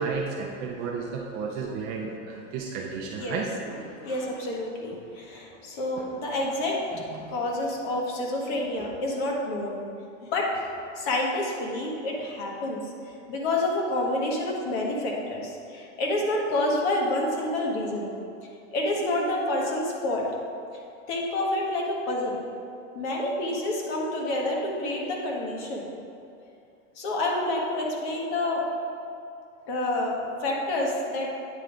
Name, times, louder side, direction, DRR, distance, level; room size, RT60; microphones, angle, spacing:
voice 1, 0.0-4.0 7.1-7.3, right 4 dB, 25° right, -1 dB, 0.4 m, -33 dB
voice 2, 4.0-6.8 7.3-9.8 10.3-10.6 10.9-18.1 18.7-20.3 21.1-22.4 22.9-25.9 26.9-28.6 29.7-31.3, left 1 dB, 55° left, -2 dB, 1.5 m, -28 dB
9.3 x 3.3 x 4.9 m, 2.6 s
supercardioid pair, 155°, 37 cm